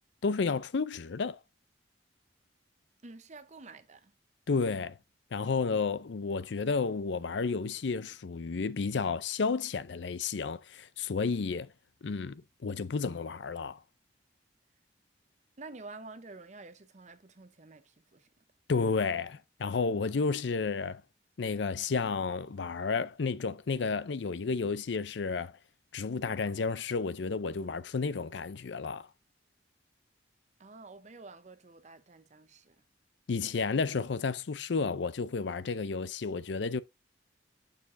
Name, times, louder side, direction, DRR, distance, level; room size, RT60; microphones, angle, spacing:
voice 1, 0.2-1.4 4.5-5.0 5.3-11.7 12.0-13.8 18.7-21.0 21.4-25.5 25.9-29.1 33.3-36.8, left 4 dB, 75° left, 0.5 m, -31 dB
voice 2, 3.0-4.1 15.6-18.4 30.6-32.8, right 3 dB, 40° right, 0.8 m, -49 dB
7.2 x 6.6 x 2.6 m
head